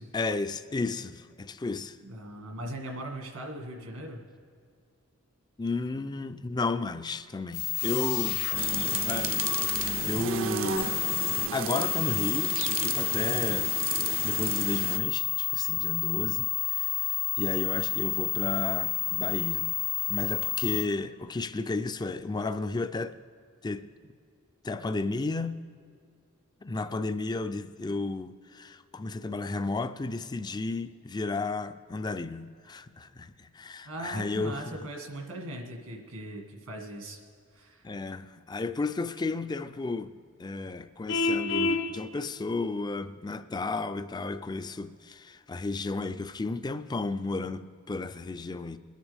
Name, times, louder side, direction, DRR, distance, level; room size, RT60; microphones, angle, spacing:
voice 1, 0.1-2.0 5.6-8.4 9.1-9.4 9.7-11.0 11.3-13.7 14.2-19.7 20.1-23.2 23.6-23.9 24.6-25.6 26.6-34.8 37.8-40.1 40.4-48.8, left 3 dB, 20° left, 0.4 m, -33 dB
voice 2, 2.0-4.2 8.7-9.0 33.8-37.2 37.5-37.9, right 1 dB, 80° right, 1.9 m, -39 dB
sound 1, 7.5-20.8, left 14 dB, 80° left, 1.7 m, -30 dB
sound 2, 8.5-15.0, right 7 dB, 65° right, 0.6 m, -33 dB
Vehicle horn car horn honking, 41.1-41.9, left 3 dB, 60° left, 0.8 m, -26 dB
21.5 x 10.5 x 3.5 m
head